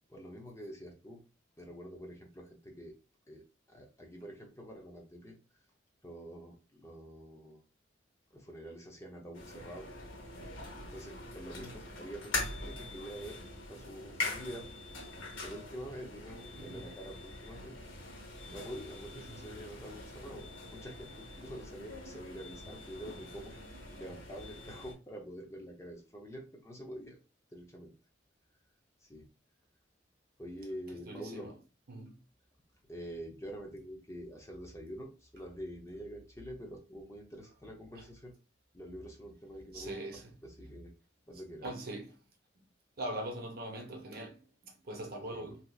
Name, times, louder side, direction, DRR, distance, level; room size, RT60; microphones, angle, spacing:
voice 1, 0.1-1.2 1.6-2.9 3.3-5.4 6.0-7.6 8.3-9.9 10.8-13.4 13.7-14.7 15.4-17.8 18.4-23.5 24.0-27.2 27.5-27.9 29.0-29.3 30.4-31.5 32.9-38.3 38.7-40.9 41.3-41.7 45.3-45.5, equal, 15° left, 0.7 m, -46 dB
sound 1, 9.3-24.9, left 2 dB, 90° left, 1.1 m, -43 dB
voice 2, 16.5-16.8 19.2-19.4 31.1-31.5 31.9-32.2 38.0-38.1 39.7-40.3 41.6-42.2 42.6-42.7 43.0-45.6, right 1 dB, 50° right, 0.8 m, -42 dB
3.4 x 2.8 x 2.4 m
head